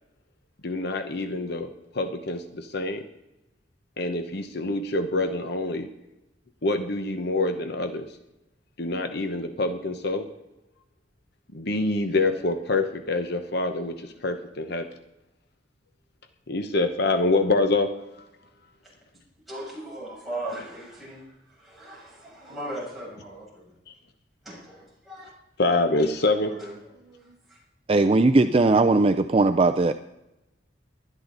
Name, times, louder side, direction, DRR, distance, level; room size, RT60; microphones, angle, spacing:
voice 1, 0.6-1.7 1.9-3.1 4.0-5.9 6.6-8.1 8.8-10.3 11.5-14.9 16.5-18.3 23.9-24.0 25.6-26.5, left 2 dB, 60° left, 1.0 m, -26 dB
voice 2, 19.5-23.7 24.4-25.3 26.4-27.6, right 1 dB, ahead, 7.1 m, -39 dB
voice 3, 27.9-29.9, right 3 dB, 30° right, 0.5 m, -19 dB
20.0 x 12.0 x 4.0 m
head